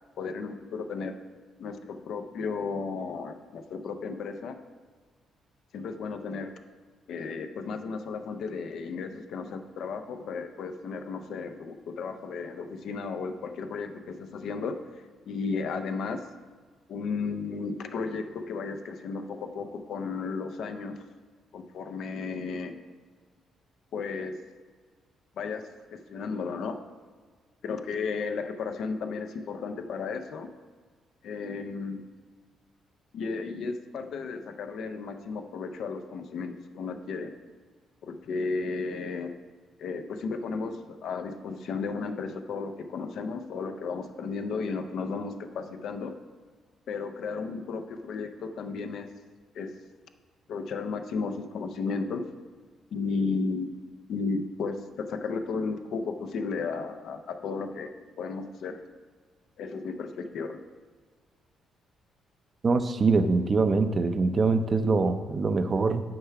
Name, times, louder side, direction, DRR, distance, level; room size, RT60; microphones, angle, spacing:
voice 1, 0.2-1.1 1.6-4.6 5.7-6.5 7.1-14.8 15.3-16.2 16.9-21.0 21.5-22.8 23.9-24.4 25.4-26.8 27.6-30.5 31.2-32.0 33.1-37.3 38.0-39.3 39.8-46.1 46.9-49.1 49.5-49.7 50.5-52.3 52.9-53.8 54.1-58.9 59.6-60.6, left 4 dB, 70° left, 8 dB, 0.5 m, -34 dB
voice 2, 62.6-66.0, right 3 dB, 40° right, 9 dB, 0.5 m, -24 dB
6.6 x 4.7 x 5.7 m, 1.5 s
cardioid pair, 90°, 0 cm